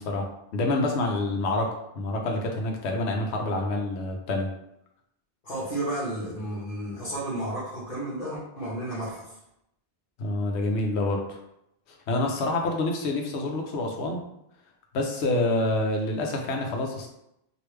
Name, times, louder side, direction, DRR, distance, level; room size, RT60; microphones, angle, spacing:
voice 1, 0.0-4.5 10.2-11.4 12.1-14.2 14.9-17.1, left 2 dB, 90° left, 2 dB, 1.0 m, -27 dB
voice 2, 5.4-9.3, right 1 dB, 55° left, -9 dB, 1.2 m, -32 dB
3.2 x 2.6 x 3.1 m, 0.82 s
omnidirectional pair, 1.1 m